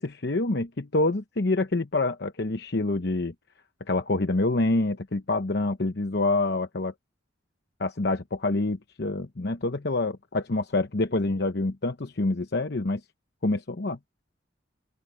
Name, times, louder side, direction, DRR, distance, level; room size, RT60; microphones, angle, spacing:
voice 1, 0.0-3.3 3.9-6.9 7.8-13.0 13.4-14.0, left 2 dB, 60° left, 0.9 m, -26 dB
open air
head